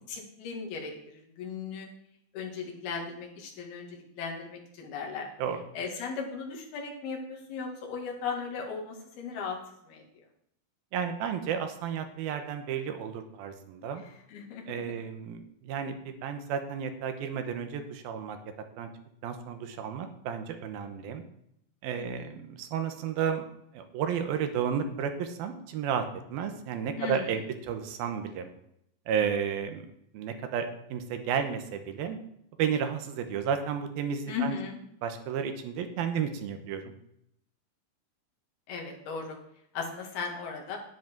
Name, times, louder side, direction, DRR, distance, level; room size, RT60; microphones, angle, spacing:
voice 1, 0.1-1.9 2.3-5.3 5.7-9.6 9.9-10.2 14.3-14.9 21.9-22.3 27.0-27.4 34.3-34.8 38.7-39.4 39.7-40.8, left 5 dB, 85° left, 0 dB, 4.0 m, -37 dB
voice 2, 10.9-14.0 14.7-18.4 18.8-18.9 19.2-21.2 21.8-23.4 23.7-28.5 29.1-29.9 30.1-32.2 32.6-34.6 35.0-36.9, right 7 dB, 80° right, 7 dB, 2.9 m, -32 dB
10.0 x 10.0 x 4.6 m, 0.75 s
omnidirectional pair, 4.3 m